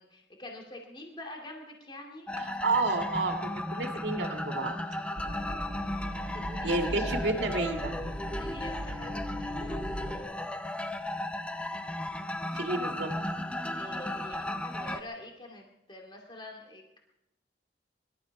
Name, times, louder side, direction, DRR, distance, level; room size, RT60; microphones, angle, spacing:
voice 1, 0.0-2.3 5.7-6.1 6.3-7.7 8.3-9.1 9.4-10.4 13.7-17.0, left 1 dB, 25° left, 1 dB, 2.3 m, -46 dB
sound 1, 2.3-15.0, left 1 dB, 5° left, 0.6 m, -35 dB
voice 2, 2.4-4.8 6.6-7.9 12.5-13.2, right 3 dB, 85° right, 3 dB, 1.9 m, -30 dB
sound 2, 5.2-10.2, equal, 40° right, 1.9 m, -38 dB
24.0 x 12.5 x 4.7 m, 0.88 s
head